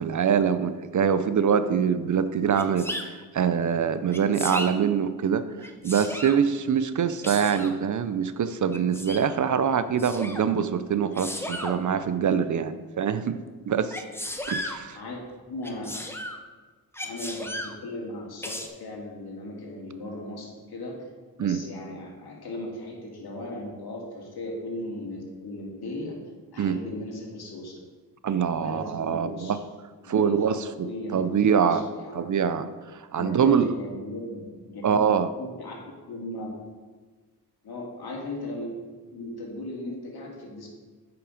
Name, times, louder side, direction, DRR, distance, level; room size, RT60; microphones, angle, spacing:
voice 1, 0.0-14.0 14.5-15.0 21.4-21.6 26.6-26.8 28.2-29.6 30.1-30.6 31.1-31.8 32.1-32.7 33.1-33.7 34.8-35.3, right 7 dB, 50° right, 12 dB, 0.5 m, -24 dB
Sneeze, 2.5-3.1 4.1-4.7 5.6-6.4 7.2-7.8 8.7-9.3 10.0-10.4 11.1-11.8 13.9-14.8 15.6-16.4 16.9-17.7 18.4-18.7, left 1 dB, 5° left, 0.9 m, -34 dB
voice 2, 14.9-16.0 17.0-21.0 21.3-26.1 26.5-27.8 28.6-29.6 30.0-32.2 33.2-35.0 35.4-35.7 36.1-36.5 37.6-38.7 39.1-40.7, left 1 dB, 70° left, -2 dB, 2.4 m, -37 dB
8.6 x 6.0 x 5.0 m, 1.4 s
cardioid pair, 80°, 39 cm